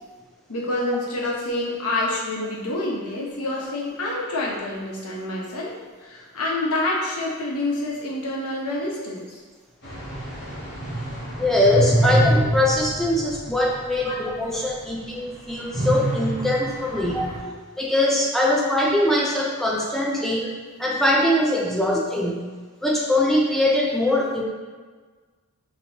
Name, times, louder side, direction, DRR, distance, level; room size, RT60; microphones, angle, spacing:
voice 1, 0.5-9.4 12.0-12.2 14.0-14.5 16.9-17.0 17.4-17.5 18.4-18.5, left 2 dB, 75° left, -4 dB, 1.0 m, -28 dB
sound 1, 9.8-14.1 14.5-14.6 15.7-17.4, right 1 dB, 55° left, 1.3 m, -25 dB
voice 2, 11.4-17.3 17.8-20.5 20.8-22.4 22.8-24.4, left 1 dB, ahead, -3 dB, 0.4 m, -22 dB
5.9 x 3.0 x 2.8 m, 1.4 s
head